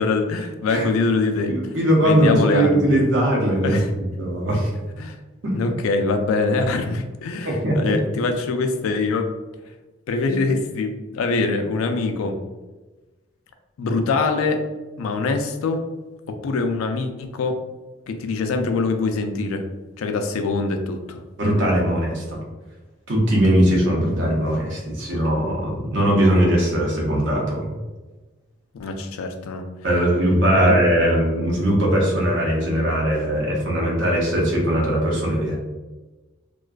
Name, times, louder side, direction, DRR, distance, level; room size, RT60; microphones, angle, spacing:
voice 1, 0.0-2.9 3.6-3.9 5.0-5.2 5.5-9.3 10.1-12.4 13.8-14.6 15.0-15.8 16.3-17.6 18.1-19.6 20.0-21.2 28.8-29.7 30.5-30.8, left 3 dB, 90° left, 6 dB, 0.3 m, -23 dB
voice 2, 1.5-3.8 4.2-4.7 5.4-5.5 7.4-8.0 21.4-22.4 23.1-27.7 29.8-35.6, right 1 dB, 60° right, -2 dB, 0.7 m, -20 dB
2.4 x 2.2 x 2.2 m, 1.2 s
head